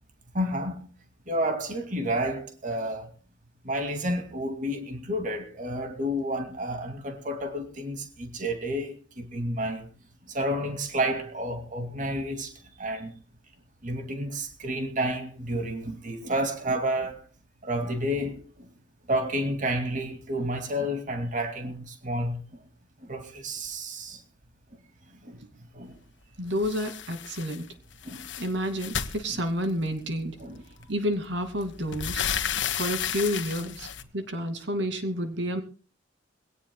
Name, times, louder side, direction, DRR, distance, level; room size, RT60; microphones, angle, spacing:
voice 1, 0.3-0.9 1.3-3.1 3.6-9.9 10.3-12.5 12.8-13.1 13.8-17.2 17.6-18.7 19.1-22.4 23.0-24.2 25.1-25.4 25.7-26.0 28.0-28.3 30.4-30.6, equal, 45° right, 2.4 m, -30 dB
voice 2, 26.4-27.7 28.4-30.4 30.9-32.2 32.8-35.6, equal, 75° right, 2.5 m, -30 dB
sound 1, 26.6-27.6 27.9-29.9 30.8-30.9 31.3-34.0, left 8 dB, 80° left, 1.4 m, -32 dB
24.0 x 17.5 x 2.3 m
head